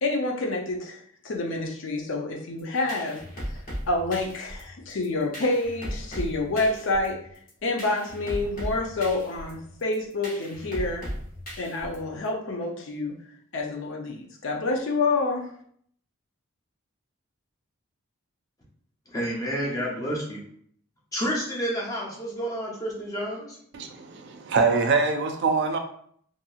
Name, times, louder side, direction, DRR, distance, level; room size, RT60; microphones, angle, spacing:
voice 1, 0.0-3.2 3.9-7.2 7.6-11.1 11.6-13.2 13.5-15.5, left 2 dB, 60° left, 1 dB, 0.5 m, -28 dB
sound 1, 2.6-12.3, equal, 40° left, 0.9 m, -37 dB
voice 2, 19.1-20.4 21.1-23.6, equal, 15° left, -4 dB, 0.7 m, -30 dB
voice 3, 23.7-25.8, right 4 dB, 55° right, 6 dB, 0.3 m, -24 dB
2.8 x 2.6 x 2.3 m, 0.62 s
head